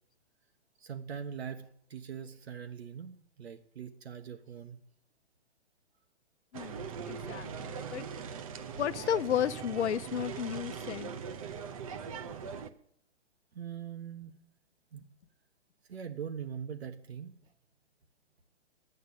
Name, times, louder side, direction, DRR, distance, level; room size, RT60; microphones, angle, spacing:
voice 1, 0.8-4.8 13.5-14.3 14.9-15.0 15.9-17.3, right 8 dB, 65° right, 6 dB, 1.3 m, -42 dB
voice 2, 6.5-8.0 8.7-11.1, left 9 dB, 80° left, 15 dB, 0.8 m, -33 dB
sound 1, 6.5-12.7, right 6 dB, 30° right, 0.7 m, -41 dB
12.0 x 9.4 x 8.0 m, 0.68 s
hypercardioid pair, 160°, 34 cm